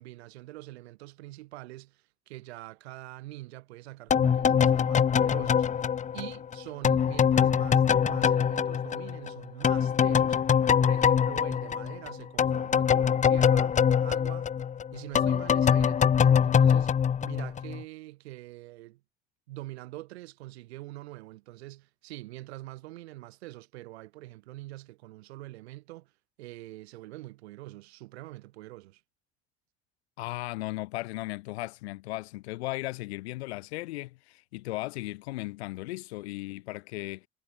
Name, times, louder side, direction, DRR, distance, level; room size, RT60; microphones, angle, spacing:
voice 1, 0.0-5.7 6.1-10.4 10.8-14.5 14.9-16.9 17.2-19.0 19.5-26.1 26.4-29.0, right 18 dB, 75° right, 4.2 m, -44 dB
sound 1, 4.1-9.3 9.6-17.8, left 8 dB, 25° left, 0.5 m, -24 dB
voice 2, 30.2-37.3, left 19 dB, 75° left, 2.5 m, -36 dB
figure-of-eight pair, 50°, 32 cm